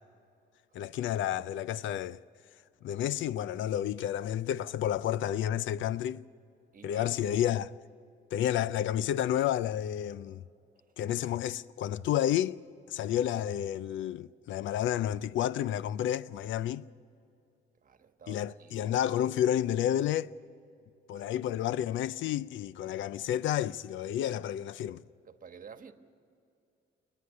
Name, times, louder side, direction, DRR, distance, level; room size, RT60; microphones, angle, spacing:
voice 1, 0.7-2.2 2.8-6.2 6.8-7.7 8.3-10.4 11.0-12.6 12.9-16.8 18.3-20.3 21.1-25.0, left 11 dB, 75° left, 0.5 m, -30 dB
voice 2, 6.7-7.2 17.8-18.8 21.2-21.3 25.3-25.9, right 6 dB, 45° right, 1.3 m, -50 dB
29.0 x 9.8 x 9.6 m
cardioid pair, 90°, 20 cm